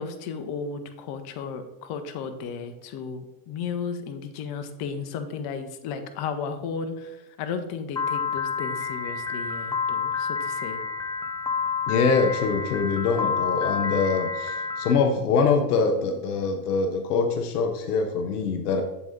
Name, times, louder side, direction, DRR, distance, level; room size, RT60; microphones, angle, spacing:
voice 1, 0.0-10.8, left 5 dB, 55° left, 8 dB, 0.9 m, -34 dB
Piano, 8.0-14.9, left 5 dB, 10° left, 0.5 m, -29 dB
voice 2, 11.9-18.8, left 4 dB, 85° left, 6 dB, 0.8 m, -24 dB
7.5 x 4.1 x 3.7 m, 0.93 s
hypercardioid pair, 85°, 45 cm